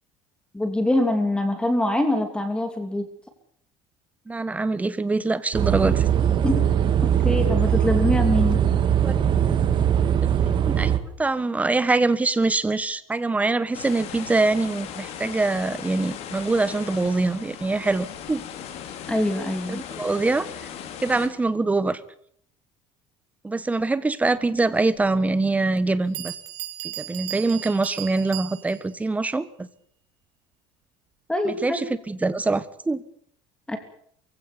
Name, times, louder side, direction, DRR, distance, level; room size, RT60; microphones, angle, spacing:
voice 1, 0.5-3.1 6.4-6.7 7.2-8.6 19.1-19.8 31.3-31.8 33.7-33.8, left 1 dB, 5° left, 7 dB, 3.0 m, -24 dB
voice 2, 4.3-6.1 9.0-9.1 10.4-10.9 11.2-18.4 19.7-20.7 21.0-22.0 23.4-26.3 27.0-29.7 31.4-33.0, right 3 dB, 10° right, 15 dB, 1.4 m, -24 dB
sound 1, 5.5-11.0, right 9 dB, 40° right, 2.4 m, -21 dB
sound 2, 13.7-21.3, left 9 dB, 60° left, 4.3 m, -38 dB
Bell, 25.0-25.1 25.8-25.9 26.1-29.0, right 14 dB, 70° right, 4.2 m, -36 dB
23.5 x 16.5 x 8.6 m, 0.63 s
cardioid pair, 140°, 12 cm